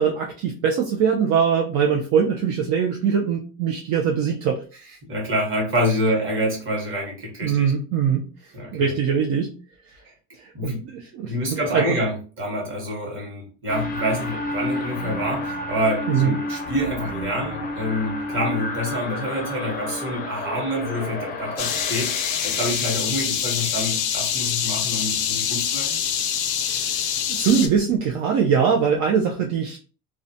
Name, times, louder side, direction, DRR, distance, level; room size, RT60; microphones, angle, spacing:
voice 1, 0.0-5.0 7.4-8.3 8.7-9.5 10.4-11.8 16.1-16.4 26.7-27.0 27.3-29.8, right 7 dB, 60° right, 1 dB, 0.5 m, -22 dB
voice 2, 5.1-7.7 8.5-9.2 10.5-10.8 11.2-26.0, equal, 35° right, 0 dB, 1.1 m, -27 dB
sound 1, 13.7-23.0, left 2 dB, 25° left, 0.5 m, -31 dB
sound 2, 21.6-27.7, left 8 dB, 75° left, 0.5 m, -25 dB
2.4 x 2.1 x 2.6 m, 0.37 s
cardioid pair, 130°, 36 cm